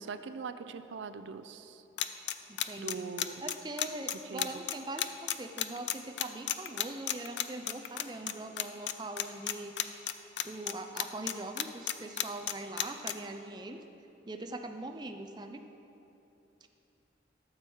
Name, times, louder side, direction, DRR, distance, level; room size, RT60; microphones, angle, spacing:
voice 1, 0.0-1.8 2.8-3.5 4.2-4.5, right 5 dB, 90° right, 11 dB, 0.4 m, -41 dB
sound 1, 2.0-8.3 8.6-8.9 9.2-10.7 11.0-13.1, left 12 dB, 75° left, 0.4 m, -32 dB
voice 2, 2.5-3.1 3.4-10.0 10.4-13.8 14.3-15.6 16.6-16.7, right 2 dB, 25° right, 4 dB, 0.4 m, -42 dB
12.5 x 7.0 x 4.6 m, 2.9 s
head